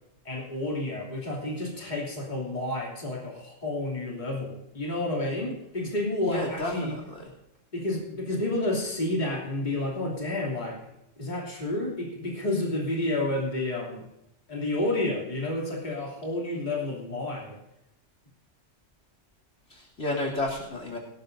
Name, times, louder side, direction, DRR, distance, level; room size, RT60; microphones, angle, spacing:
voice 1, 0.2-7.0 7.7-10.8 11.2-14.1 14.5-17.6, left 2 dB, 35° left, -3 dB, 3.1 m, -30 dB
voice 2, 6.3-7.0 19.7-21.0, left 2 dB, 60° left, 0 dB, 3.4 m, -31 dB
18.5 x 16.5 x 2.7 m, 0.87 s
omnidirectional pair, 1.3 m